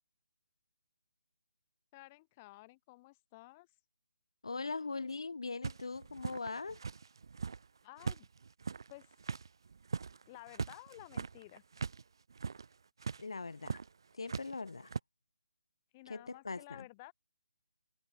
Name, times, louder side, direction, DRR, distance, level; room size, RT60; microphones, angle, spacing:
voice 1, 1.9-3.7 7.8-8.3 8.9-9.1 10.3-11.6 15.9-17.1, left 21 dB, 20° left, 1.0 m, -53 dB
voice 2, 4.4-6.8 13.2-13.8 14.1-14.9 16.1-16.8, left 4 dB, 85° left, 1.3 m, -41 dB
sound 1, 5.6-7.7 8.0-12.0 12.3-12.7 13.0-13.2 13.6-13.9 14.3-15.0, right 5 dB, 55° right, 1.2 m, -40 dB
hypercardioid pair, 170°, 3 cm